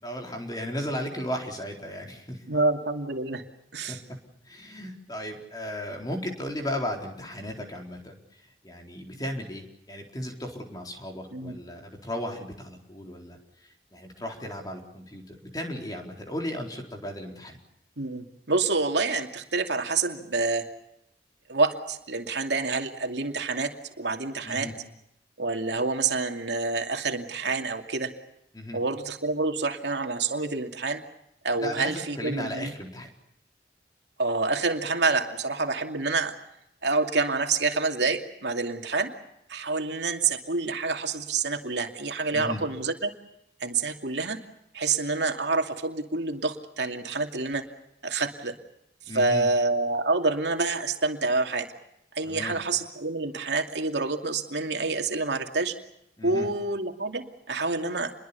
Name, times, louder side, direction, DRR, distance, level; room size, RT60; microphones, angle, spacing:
voice 1, 0.0-2.4 3.9-4.2 4.4-17.6 24.4-24.7 28.5-28.8 31.6-33.1 42.3-42.6 49.0-49.5 52.2-52.6 56.2-56.5, left 1 dB, 20° left, 2 dB, 4.1 m, -35 dB
voice 2, 2.5-3.4 3.7-4.0 11.3-11.6 18.0-20.6 21.5-24.7 25.4-28.1 28.7-31.0 31.4-32.7 34.2-36.3 36.8-39.1 39.5-43.1 43.6-44.4 44.7-47.6 48.0-48.5 49.1-51.7 52.1-55.7 56.2-58.1, right 3 dB, 80° right, 4 dB, 2.7 m, -27 dB
28.0 x 22.5 x 7.0 m, 0.80 s
head